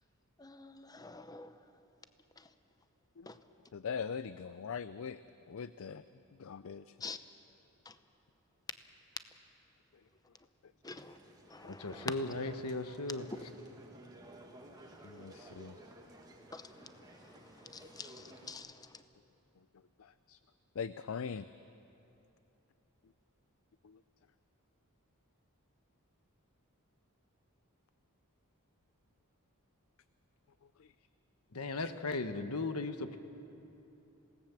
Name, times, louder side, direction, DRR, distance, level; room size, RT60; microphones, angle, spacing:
voice 1, 0.4-1.6 2.4-2.5 3.3-3.4 7.0-7.2 7.8-8.0 10.8-11.2 11.5-12.3 14.8-15.6 16.5-19.0, left 3 dB, 15° left, 10 dB, 0.7 m, -47 dB
voice 2, 3.7-5.2 5.5-6.0 6.4-6.9 11.6-11.7 15.0-15.8 20.0-20.4 20.8-21.5 23.8-24.0 30.8-30.9 31.8-31.9, left 6 dB, 65° left, 14 dB, 0.5 m, -41 dB
sound 1, 10.8-18.5, right 1 dB, 20° right, 2.0 m, -55 dB
voice 3, 11.7-13.3 31.5-33.2, left 2 dB, 90° left, 9 dB, 1.2 m, -37 dB
26.5 x 18.0 x 7.3 m, 3.0 s
head